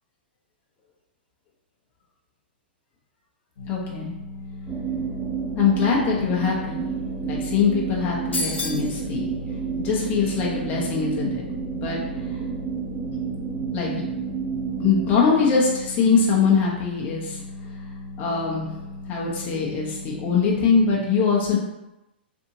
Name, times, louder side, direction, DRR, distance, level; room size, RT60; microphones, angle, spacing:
sound 1, 3.6-21.0, left 2 dB, 70° left, 0.9 m, -38 dB
voice 1, 3.7-4.1 5.6-6.9 7.2-9.4 9.8-11.4 11.8-12.0 13.7-14.0 14.8-17.4 18.2-18.7 19.1-21.6, left 5 dB, 30° left, -4 dB, 0.7 m, -22 dB
sound 2, 4.7-15.2, right 7 dB, 25° right, 0.6 m, -30 dB
sound 3, 8.3-8.9, left 3 dB, 90° left, 0.4 m, -28 dB
2.7 x 2.6 x 2.7 m, 0.94 s
hypercardioid pair, 115°, 6 cm